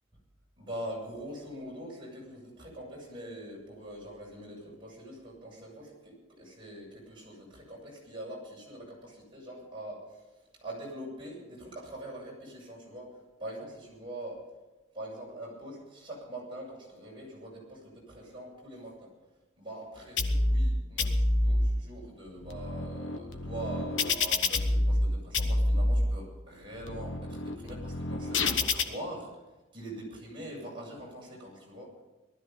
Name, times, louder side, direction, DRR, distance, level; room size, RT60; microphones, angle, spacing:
voice 1, 0.6-14.4 14.9-19.1 19.6-29.3 29.7-31.9, right 1 dB, 25° right, -4 dB, 7.3 m, -43 dB
sound 1, 20.2-20.7 21.0-21.7 22.3-25.1 25.3-26.1 26.6-28.8, left 2 dB, 70° left, 1.3 m, -28 dB
19.0 x 13.5 x 5.4 m, 1.1 s
head